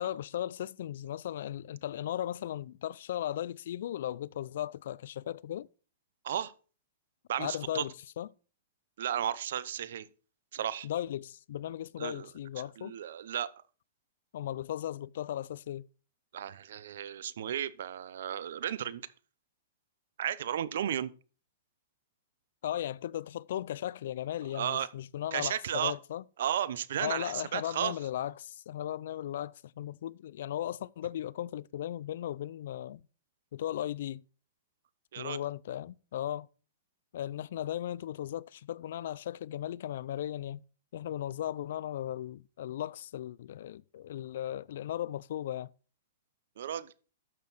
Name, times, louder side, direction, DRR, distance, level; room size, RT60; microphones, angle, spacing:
voice 1, 0.0-5.7 7.4-8.3 10.8-12.9 14.3-15.9 22.6-26.2 27.0-33.0 33.5-34.2 35.2-36.5 37.1-40.6 40.9-45.7, left 11 dB, 70° left, 0.4 m, -37 dB
voice 2, 7.3-7.8 9.0-10.1 10.5-10.9 12.0-12.3 12.8-13.5 16.3-19.0 20.2-21.1 24.5-24.9 25.3-25.9 26.4-28.0 35.1-35.4 46.6-46.9, right 10 dB, 70° right, 0.8 m, -34 dB
12.0 x 6.6 x 4.1 m
hypercardioid pair, 140°, 0 cm